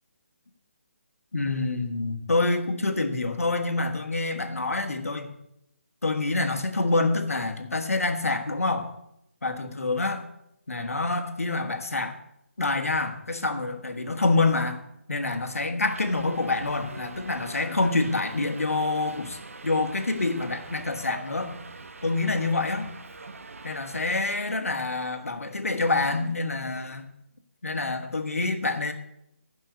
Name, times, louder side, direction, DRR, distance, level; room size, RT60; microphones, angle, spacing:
voice 1, 1.3-5.4 6.0-8.9 9.4-10.3 10.7-12.2 12.6-14.8 15.1-19.4 19.6-21.5 22.0-22.9 23.6-27.1 27.6-28.9, left 3 dB, 90° left, 6 dB, 1.5 m, -27 dB
Subway metro underground, 15.8-24.4, right 3 dB, 75° right, 1.0 m, -43 dB
10.5 x 5.5 x 8.0 m, 0.80 s
figure-of-eight pair, 155°, 7 cm